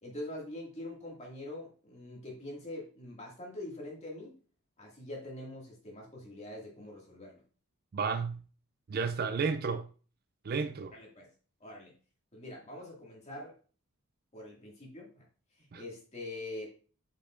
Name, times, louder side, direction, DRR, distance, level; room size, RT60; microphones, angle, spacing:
voice 1, 0.0-4.3 4.8-7.4 10.9-11.3 11.6-11.9 12.3-13.5 14.3-15.3 15.6-16.7, left 1 dB, 30° left, 2.2 m, -44 dB
voice 2, 7.9-8.4 8.9-9.9 10.4-10.9 15.7-15.8, right 5 dB, 45° right, 0.4 m, -32 dB
8.3 x 5.4 x 2.5 m
head